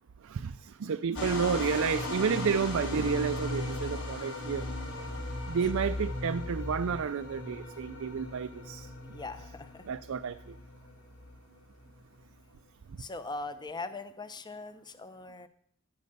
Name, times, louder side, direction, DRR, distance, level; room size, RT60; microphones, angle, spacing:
voice 1, 0.8-4.7 5.5-8.9 9.9-10.4, right 6 dB, 70° right, 10 dB, 0.4 m, -30 dB
sound 1, 1.1-12.0, left 2 dB, 70° left, 4.1 m, -37 dB
voice 2, 9.0-9.9 13.0-15.5, left 3 dB, 20° left, 11 dB, 0.8 m, -41 dB
11.0 x 9.2 x 6.7 m, 0.64 s
head